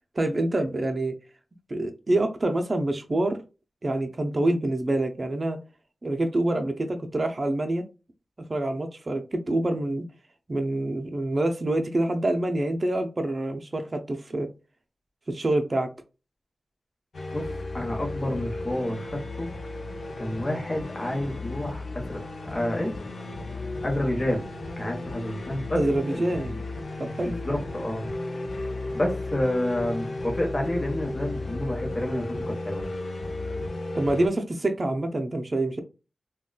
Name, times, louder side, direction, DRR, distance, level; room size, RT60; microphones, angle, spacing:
voice 1, 0.2-1.1 1.7-3.4 3.8-5.6 6.0-7.8 8.5-10.1 10.5-14.5 15.3-15.9 25.7-26.5 27.0-27.4 33.9-35.8, right 1 dB, 40° right, 0.5 m, -26 dB
sound 1, 17.1-34.3, left 2 dB, 85° left, 0.5 m, -34 dB
voice 2, 17.7-19.5 20.2-22.2 22.4-23.1 23.8-24.4 24.8-25.8 26.1-26.6 27.2-28.1 28.9-32.9, left 1 dB, 35° left, 1.1 m, -29 dB
3.7 x 2.3 x 2.2 m
wide cardioid pair, 85°, 0 cm